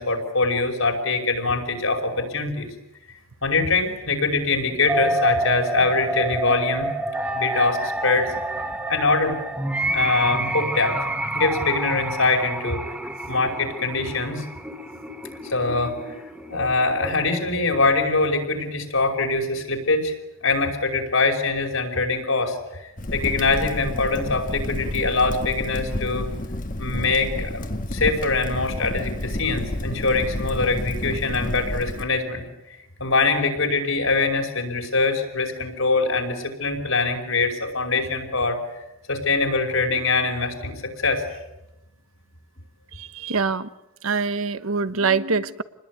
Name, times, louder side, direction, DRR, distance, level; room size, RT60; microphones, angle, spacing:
voice 1, 0.0-2.7 3.4-6.9 7.3-8.3 8.9-9.4 9.8-11.0 11.3-12.8 13.3-14.4 15.4-16.2 16.5-20.1 20.4-26.3 26.8-27.6 27.9-32.4 33.0-41.2, left 3 dB, 70° left, 3 dB, 5.4 m, -23 dB
sound 1, 4.8-18.8, right 1 dB, 5° right, 2.1 m, -29 dB
Crackle, 23.0-32.0, left 1 dB, 40° left, 1.6 m, -30 dB
voice 2, 42.9-43.7 44.0-45.6, right 4 dB, 75° right, 14 dB, 1.2 m, -24 dB
29.0 x 20.5 x 9.6 m, 0.96 s
head